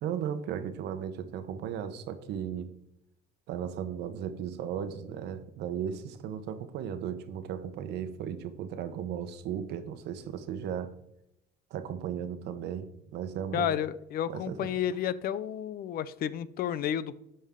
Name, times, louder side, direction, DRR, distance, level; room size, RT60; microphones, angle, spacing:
voice 1, 0.0-2.7 3.5-10.9 11.7-13.8 14.3-14.7, right 8 dB, 80° right, 10 dB, 0.9 m, -36 dB
voice 2, 13.5-17.2, left 10 dB, 65° left, 17 dB, 0.5 m, -31 dB
12.5 x 5.5 x 3.7 m, 0.83 s
cardioid pair, 110°, 17 cm